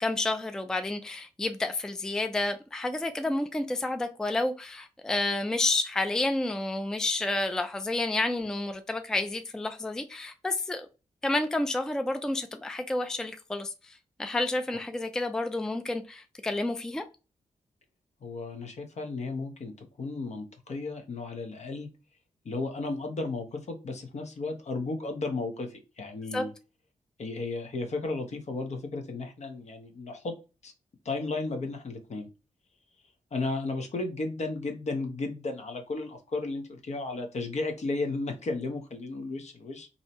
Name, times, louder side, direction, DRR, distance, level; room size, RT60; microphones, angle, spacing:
voice 1, 0.0-10.9 11.2-17.0 26.3-26.4, left 2 dB, 5° left, 0.3 m, -30 dB
voice 2, 18.2-19.7 20.0-21.9 22.4-26.5 27.2-30.3 30.6-30.7 31.0-32.3 33.3-39.9, left 3 dB, 60° left, 0.7 m, -34 dB
2.6 x 2.1 x 2.8 m
cardioid pair, 80°, 13 cm